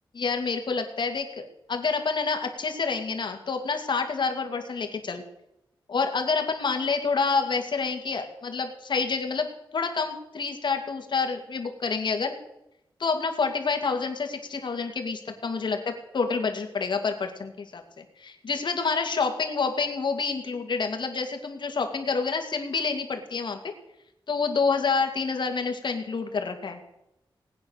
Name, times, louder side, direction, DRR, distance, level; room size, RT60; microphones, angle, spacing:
voice 1, 0.1-5.2 5.9-9.5 9.7-12.3 13.0-23.7 24.3-26.8, left 4 dB, 65° left, 4 dB, 2.4 m, -28 dB
19.5 x 9.4 x 6.6 m, 0.84 s
wide cardioid pair, 105°, 9 cm